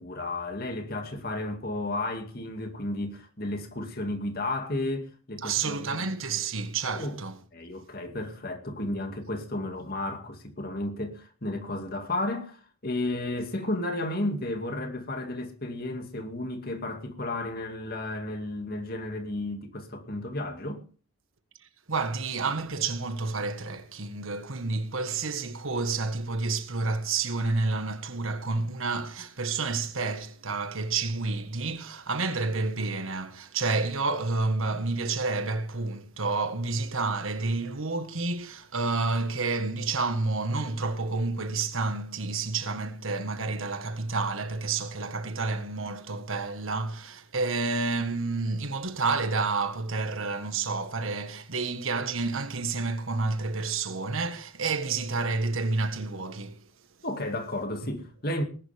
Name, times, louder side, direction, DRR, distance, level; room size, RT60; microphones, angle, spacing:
voice 1, 0.0-6.0 6.9-7.2 7.5-20.8 57.0-58.4, left 1 dB, 45° left, 2.3 m, -33 dB
voice 2, 5.4-7.4 21.9-56.6, right 3 dB, 70° right, 1.6 m, -29 dB
19.5 x 11.5 x 3.5 m
head